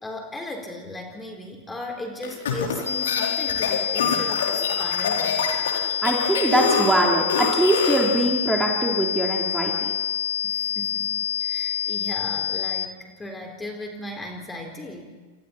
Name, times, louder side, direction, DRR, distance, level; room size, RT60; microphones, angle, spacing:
voice 1, 0.0-5.4 10.4-11.1 11.4-15.1, left 1 dB, 10° left, 3 dB, 3.9 m, -36 dB
sound 1, 2.2-8.1, left 6 dB, 60° left, 4.2 m, -26 dB
sound 2, 2.9-12.9, left 9 dB, 80° left, 1.6 m, -27 dB
voice 2, 6.0-9.9, right 1 dB, 5° right, -1 dB, 3.5 m, -22 dB
28.5 x 28.0 x 4.3 m, 1.3 s
figure-of-eight pair, 90°, 0 cm